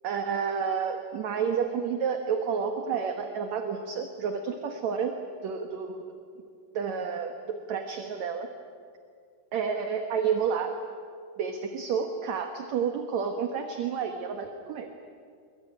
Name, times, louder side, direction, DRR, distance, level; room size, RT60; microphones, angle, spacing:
voice 1, 0.0-5.1 5.4-6.0 6.7-8.5 9.5-10.7 11.4-14.9, right 6 dB, 60° right, 5 dB, 2.2 m, -30 dB
26.5 x 23.0 x 9.7 m, 2.2 s
omnidirectional pair, 4.5 m